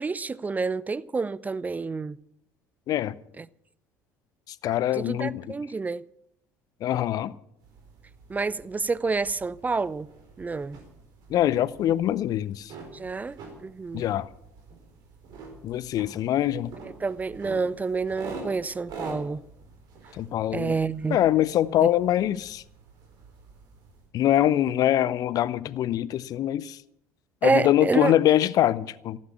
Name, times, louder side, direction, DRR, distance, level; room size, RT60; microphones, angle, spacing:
voice 1, 0.0-2.2 3.4-3.5 4.9-6.0 8.3-10.1 10.4-10.8 12.9-14.0 16.8-19.4 20.5-21.2 21.8-21.9 27.4-28.1, right 4 dB, 20° right, 0.5 m, -28 dB
voice 2, 4.6-5.5 6.8-7.3 11.3-12.7 13.9-14.3 15.6-16.7 20.1-20.7 21.1-22.6 24.1-26.8 27.4-29.2, left 12 dB, 45° left, 0.7 m, -24 dB
sound 1, 7.6-24.1, right 3 dB, 55° right, 4.3 m, -46 dB
15.0 x 12.0 x 7.2 m
figure-of-eight pair, 60°, 8 cm